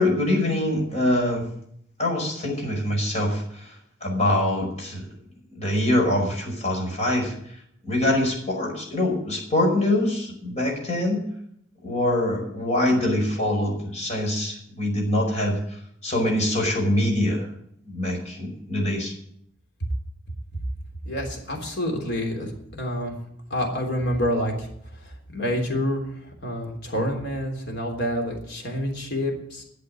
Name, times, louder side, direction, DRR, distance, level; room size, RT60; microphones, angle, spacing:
voice 1, 0.0-1.4 2.0-3.4 4.0-5.0 5.6-7.3 7.8-11.2 11.8-15.6 16.0-17.5 17.9-19.1, left 1 dB, 35° left, 0 dB, 5.3 m, -24 dB
voice 2, 21.0-23.1 23.5-24.7 25.0-26.1 26.4-29.6, equal, 60° left, 2 dB, 3.4 m, -28 dB
12.0 x 7.7 x 9.6 m, 0.70 s
head